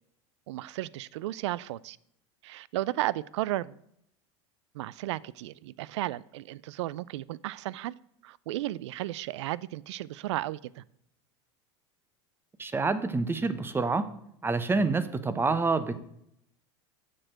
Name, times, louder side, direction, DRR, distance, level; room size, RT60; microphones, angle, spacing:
voice 1, 0.5-2.0 2.4-3.7 4.7-7.9 8.2-10.8, right 15 dB, 75° right, 0.4 m, -34 dB
voice 2, 12.6-14.1 14.4-15.9, right 3 dB, 15° right, 0.8 m, -27 dB
7.4 x 6.8 x 6.3 m
hypercardioid pair, 95°, 15 cm